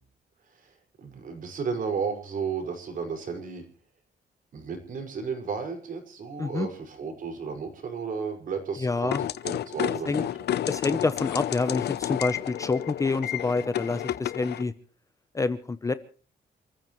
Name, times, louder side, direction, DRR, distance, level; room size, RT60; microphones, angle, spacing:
voice 1, 0.5-3.7 4.5-10.3, right 5 dB, 50° right, 5 dB, 5.4 m, -33 dB
voice 2, 8.8-9.2 10.1-10.2 10.7-14.7 15.3-15.9, left 3 dB, 20° left, 12 dB, 0.8 m, -27 dB
sound 1, 9.1-14.6, left 12 dB, 70° left, 0.7 m, -31 dB
29.0 x 15.0 x 3.1 m, 0.41 s
wide cardioid pair, 180°, 18 cm